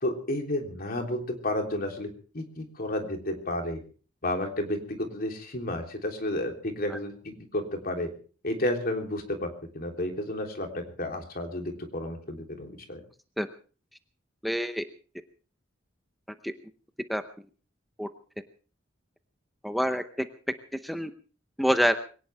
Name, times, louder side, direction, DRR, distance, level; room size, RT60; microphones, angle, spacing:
voice 1, 0.0-2.1 2.3-3.8 4.2-8.1 8.4-9.5 9.7-13.0, left 1 dB, 50° left, 3 dB, 3.5 m, -31 dB
voice 2, 14.4-14.8 16.4-16.5 17.1-17.2 18.0-18.1 19.6-20.3 20.8-21.1 21.6-22.0, equal, ahead, 8 dB, 0.8 m, -26 dB
22.0 x 18.0 x 3.5 m, 0.40 s
head